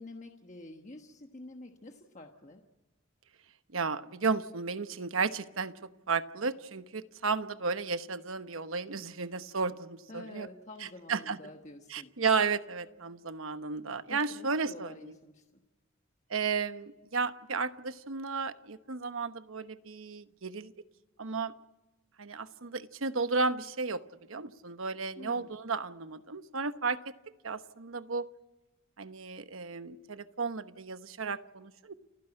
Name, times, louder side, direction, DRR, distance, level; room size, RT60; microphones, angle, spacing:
voice 1, 0.0-2.6 10.1-12.1 14.1-15.4 25.2-25.5, left 2 dB, 35° left, 4 dB, 1.3 m, -48 dB
voice 2, 3.7-5.7 6.1-10.5 11.1-11.4 11.9-15.2 16.3-20.7 21.2-21.5 22.2-24.0 24.3-27.0 27.4-28.3 29.0-31.9, right 4 dB, 75° right, 11 dB, 1.0 m, -33 dB
29.5 x 10.5 x 9.8 m, 1.1 s
head